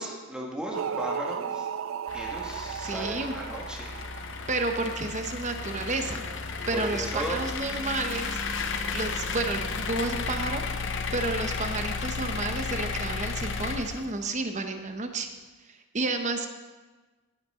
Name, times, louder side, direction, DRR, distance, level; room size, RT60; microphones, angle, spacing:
voice 1, 0.0-1.7 2.1-4.0 6.7-7.4, equal, 5° right, -2 dB, 1.8 m, -35 dB
sound 1, 0.7-5.0, right 8 dB, 70° right, 0.4 m, -35 dB
sound 2, 2.1-14.4, left 4 dB, 60° left, 0.8 m, -33 dB
voice 2, 2.8-3.3 4.5-6.2 6.7-8.4 8.9-15.3 15.7-16.5, right 3 dB, 35° right, 6 dB, 1.0 m, -31 dB
17.5 x 8.0 x 3.8 m, 1.3 s
head